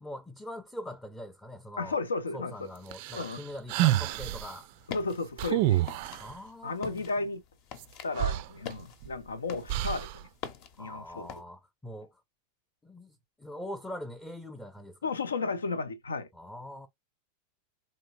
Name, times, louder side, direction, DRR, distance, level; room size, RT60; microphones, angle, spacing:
voice 1, 0.0-2.0 2.3-4.7 6.2-7.0 10.8-12.2 12.8-15.0 16.3-16.9, left 1 dB, 10° left, 0.6 m, -42 dB
voice 2, 1.8-2.7 3.1-3.4 4.9-5.8 6.6-7.4 8.0-10.1 10.8-11.3 15.0-16.3, left 3 dB, 70° left, 0.6 m, -33 dB
sound 1, 2.9-4.5 5.4-6.3 7.8-7.9 8.2-9.1 9.7-10.2, right 14 dB, 45° right, 0.4 m, -28 dB
sound 2, 4.7-11.4, left 8 dB, 45° left, 0.8 m, -46 dB
4.3 x 3.1 x 2.8 m
figure-of-eight pair, 90°, 0 cm